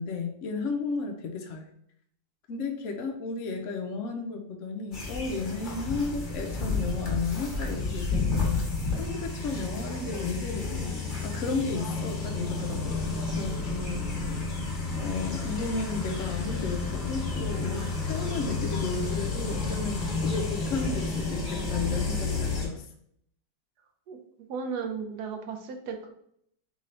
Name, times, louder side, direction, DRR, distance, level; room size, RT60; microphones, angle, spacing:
voice 1, 0.0-1.7 2.5-8.7 9.0-14.4 15.0-22.8, left 4 dB, 70° left, 3 dB, 0.7 m, -33 dB
sound 1, 4.9-22.7, left 3 dB, 35° left, 1.0 m, -31 dB
voice 2, 24.1-26.1, right 5 dB, 70° right, 4 dB, 1.1 m, -35 dB
3.8 x 3.7 x 3.2 m, 0.69 s
omnidirectional pair, 2.0 m